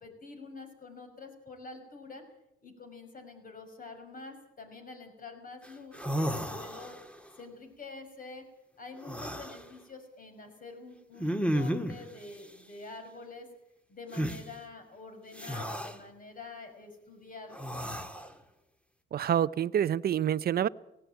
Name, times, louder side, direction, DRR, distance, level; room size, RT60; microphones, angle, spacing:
voice 1, 0.0-2.2 2.6-7.0 7.3-8.5 8.8-13.5 13.9-17.6, left 3 dB, 45° left, 5 dB, 5.7 m, -47 dB
sound 1, 5.6-5.7 5.9-7.2 9.0-9.6 11.2-12.1 14.1-14.4 15.4-16.0 17.5-18.3, equal, 5° left, 1.7 m, -33 dB
voice 2, 19.1-20.7, right 10 dB, 50° right, 17 dB, 0.6 m, -27 dB
17.5 x 17.5 x 8.8 m, 0.88 s
cardioid pair, 90°, 20 cm